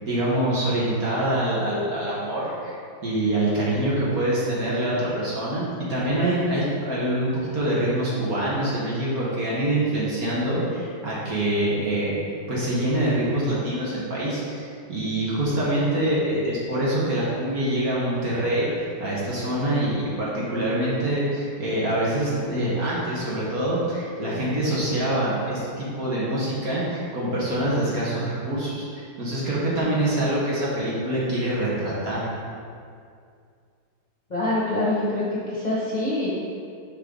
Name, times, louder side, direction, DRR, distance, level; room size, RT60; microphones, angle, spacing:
voice 1, 0.0-2.8 3.0-12.2 12.5-18.7 19.0-32.2, right 1 dB, 50° right, -7 dB, 1.8 m, -25 dB
voice 2, 34.3-36.3, left 1 dB, 25° left, -8 dB, 1.3 m, -25 dB
10.0 x 3.8 x 3.8 m, 2.3 s
omnidirectional pair, 2.1 m